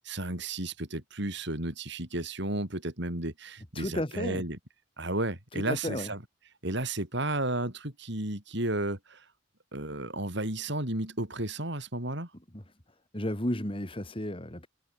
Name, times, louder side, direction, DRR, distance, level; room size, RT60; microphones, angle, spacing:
voice 1, 0.0-4.6 5.0-6.2 6.6-9.3 9.7-12.3, right 2 dB, 60° right, 5.3 m, -33 dB
voice 2, 3.7-4.4 5.5-6.1 12.5-12.6 13.1-14.7, left 1 dB, 25° left, 2.9 m, -33 dB
head